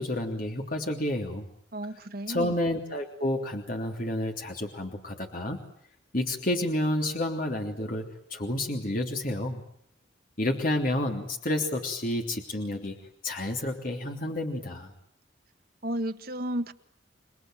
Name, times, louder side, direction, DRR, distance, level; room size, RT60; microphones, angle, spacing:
voice 1, 0.0-1.5 2.3-5.6 6.1-9.6 10.4-13.0 13.2-14.9, left 1 dB, 45° left, 3 dB, 3.2 m, -30 dB
voice 2, 1.7-2.5 15.8-16.7, right 1 dB, 50° right, 8 dB, 1.5 m, -32 dB
28.5 x 20.5 x 9.1 m, 0.65 s
head